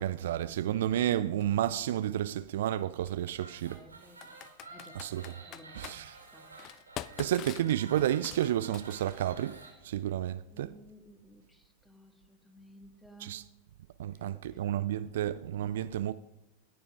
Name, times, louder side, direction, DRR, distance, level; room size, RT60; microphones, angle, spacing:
voice 1, 0.0-3.8 4.9-5.2 5.8-6.2 7.2-9.6 9.8-10.8 13.2-13.4 14.0-16.1, right 12 dB, 60° right, 0.3 m, -31 dB
Computer keyboard, 1.4-1.5 3.1-3.3 4.2-6.0 6.6-9.3, left 13 dB, 35° left, 0.3 m, -45 dB
sound 1, 3.4-9.7, right 3 dB, 85° right, 3.0 m, -51 dB
voice 2, 3.7-4.4 4.7-5.2 5.5-6.5 10.5-13.5 14.3-14.6 14.9-15.1, right 1 dB, 5° left, 1.7 m, -56 dB
18.5 x 7.1 x 3.6 m
figure-of-eight pair, 90°, 0 cm